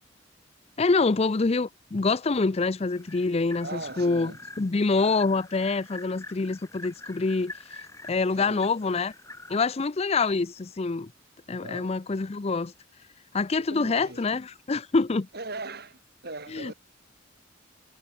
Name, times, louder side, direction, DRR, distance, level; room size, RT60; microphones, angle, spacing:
voice 1, 0.8-4.3 4.6-7.5 8.1-9.1 9.5-11.1 11.5-12.7 13.3-15.3 16.5-16.7, left 3 dB, 30° left, 0.5 m, -26 dB
sound 1, 2.9-9.7, left 2 dB, 15° left, 2.3 m, -46 dB
voice 2, 3.6-4.4 8.4-8.7 11.6-11.9 13.6-14.4 15.3-16.7, right 2 dB, 55° right, 6.7 m, -39 dB
head